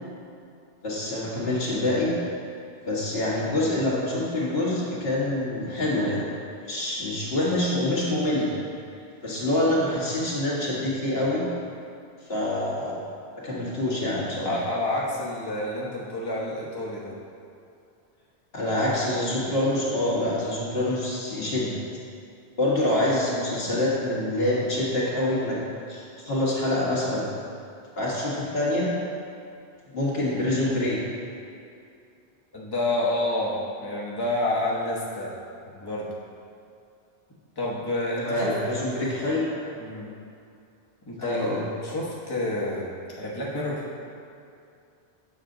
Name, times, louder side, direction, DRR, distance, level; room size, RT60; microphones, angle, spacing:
voice 1, 0.8-2.1 2.8-6.2 6.6-8.5 9.2-11.5 12.3-13.0 13.4-14.6 18.5-21.7 22.6-25.6 25.9-27.3 28.0-28.9 29.9-31.0 38.2-39.5 41.2-41.6, left 1 dB, 60° left, -6 dB, 1.9 m, -26 dB
voice 2, 14.4-17.2 32.5-35.4 35.7-36.1 37.6-38.6 38.9-39.1 39.8-40.1 41.1-43.9, left 1 dB, 20° left, -5 dB, 1.1 m, -29 dB
7.4 x 6.5 x 3.8 m, 2.5 s
omnidirectional pair, 1.1 m